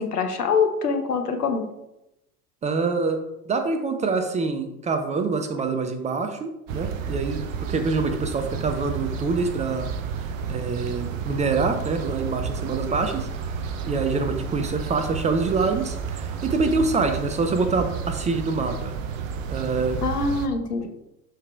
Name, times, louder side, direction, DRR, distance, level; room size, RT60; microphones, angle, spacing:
voice 1, 0.0-1.7 20.0-20.9, left 5 dB, 75° left, 5 dB, 1.1 m, -24 dB
voice 2, 2.6-3.2 3.5-7.4 7.7-9.9 10.5-13.3 13.8-18.9 19.5-20.0, right 4 dB, 15° right, 7 dB, 0.5 m, -25 dB
sound 1, 6.7-20.5, right 6 dB, 55° right, 0.9 m, -31 dB
12.0 x 4.8 x 2.3 m, 0.88 s
figure-of-eight pair, 75°, 46 cm